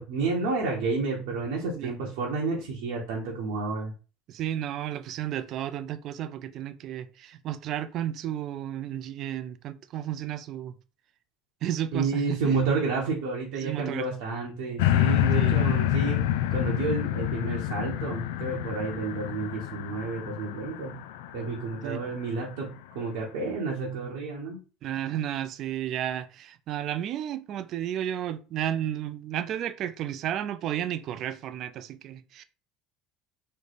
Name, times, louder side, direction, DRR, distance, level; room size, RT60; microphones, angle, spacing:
voice 1, 0.0-3.9 11.9-21.0 21.3-24.6, right 4 dB, 80° right, 1.0 m, -30 dB
voice 2, 4.3-10.7 11.6-12.5 13.5-14.1 15.3-15.6 21.8-22.0 24.8-32.4, right 11 dB, 50° right, 0.4 m, -33 dB
sound 1, 14.8-22.2 22.7-22.8, left 12 dB, 80° left, 0.3 m, -27 dB
3.3 x 2.1 x 4.0 m
supercardioid pair, 100°, 0 cm